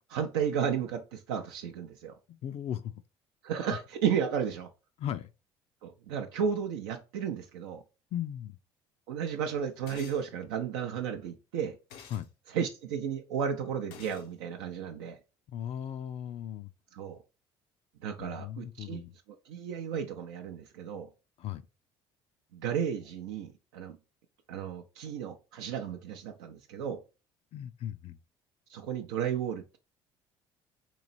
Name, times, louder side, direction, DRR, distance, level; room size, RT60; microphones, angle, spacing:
voice 1, 0.0-2.1 3.4-4.7 5.8-7.8 9.1-11.8 12.5-15.2 16.9-17.2 18.0-19.0 19.5-21.1 22.5-24.0 24.5-27.0 28.7-29.8, right 8 dB, 90° right, 0.5 m, -33 dB
voice 2, 2.3-3.0 5.0-5.3 8.1-8.6 12.1-12.3 15.5-16.7 18.2-19.1 21.4-21.6 27.5-28.2, left 10 dB, 55° left, 0.4 m, -37 dB
sound 1, 9.9-10.2 11.9-12.3 13.9-14.3, left 7 dB, 90° left, 0.7 m, -49 dB
3.1 x 2.9 x 4.0 m
supercardioid pair, 75°, 12 cm